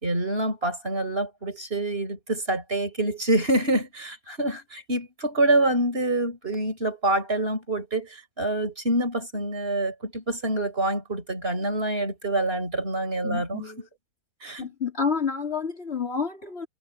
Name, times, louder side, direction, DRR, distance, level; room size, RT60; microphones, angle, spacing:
voice 1, 0.0-13.6 14.4-14.7, right 2 dB, 40° right, 4.8 m, -26 dB
voice 2, 13.2-13.8 14.6-16.7, left 6 dB, 45° left, 2.9 m, -29 dB
omnidirectional pair, 1.6 m